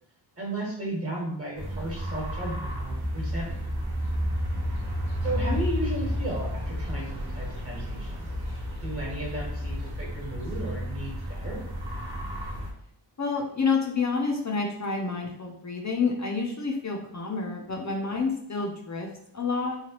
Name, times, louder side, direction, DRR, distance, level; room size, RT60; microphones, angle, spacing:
voice 1, 0.4-3.6 5.2-8.3 8.8-11.6, right 1 dB, 30° right, -3 dB, 1.3 m, -34 dB
sound 1, 1.6-12.7, equal, 50° right, 0.8 m, -31 dB
voice 2, 13.2-19.8, left 4 dB, 35° left, 0 dB, 0.5 m, -29 dB
3.1 x 2.2 x 2.8 m, 0.72 s
wide cardioid pair, 70°, 49 cm